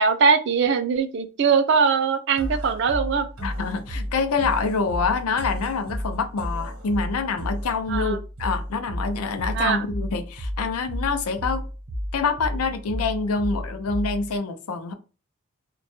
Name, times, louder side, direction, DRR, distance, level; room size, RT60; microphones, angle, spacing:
voice 1, 0.0-3.3 7.9-8.2 9.5-9.9, right 5 dB, 55° right, 0.3 m, -21 dB
sound 1, 2.4-14.4, equal, 85° right, 0.8 m, -32 dB
voice 2, 3.4-11.7 12.1-14.9, left 4 dB, 90° left, 0.4 m, -26 dB
2.2 x 2.0 x 2.9 m
head